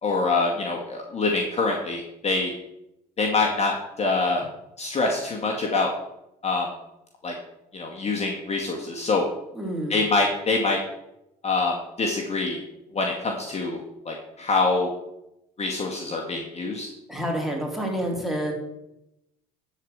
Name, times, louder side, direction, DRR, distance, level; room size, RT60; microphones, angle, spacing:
voice 1, 0.0-2.5 3.2-4.5 4.8-5.9 6.4-6.7 7.2-7.3 7.7-9.2 9.9-10.8 11.4-12.6 12.9-13.8 14.1-14.9 15.6-16.9, left 3 dB, 30° left, 0 dB, 2.1 m, -25 dB
voice 2, 9.5-9.9 17.1-18.5, equal, ahead, -1 dB, 4.3 m, -28 dB
12.0 x 5.0 x 8.1 m, 0.87 s
hypercardioid pair, 70°, 21 cm